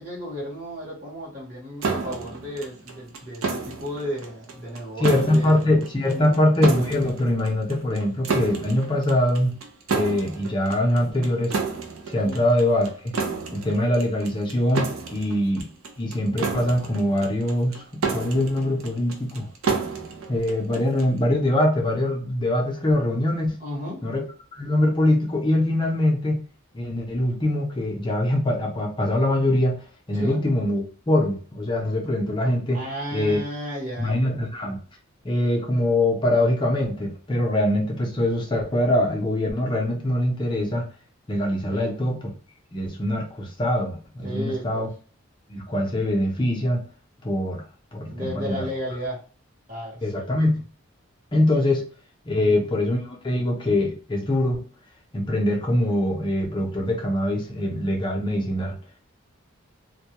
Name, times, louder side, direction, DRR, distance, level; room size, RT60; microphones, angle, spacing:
voice 1, 0.0-5.7 6.0-6.4 12.2-12.4 23.6-24.1 30.1-30.4 32.7-34.2 41.7-42.0 44.2-44.9 48.1-49.2 49.7-50.3 52.3-52.6, equal, 40° right, 1.0 m, -33 dB
sound 1, 1.8-21.2, right 4 dB, 75° right, 0.5 m, -31 dB
voice 2, 5.0-9.5 9.9-11.6 12.1-13.1 13.5-15.7 16.0-17.8 18.1-19.5 20.3-23.6 24.0-24.2 24.5-26.4 26.7-29.8 30.1-32.8 33.1-33.4 34.0-34.8 35.2-40.9 41.3-42.2 42.7-44.9 45.5-46.8 47.2-47.6 47.9-48.7 50.0-50.6 51.3-51.8 52.3-54.6 55.1-58.8, left 1 dB, 20° left, 0.5 m, -23 dB
2.2 x 2.1 x 2.8 m
head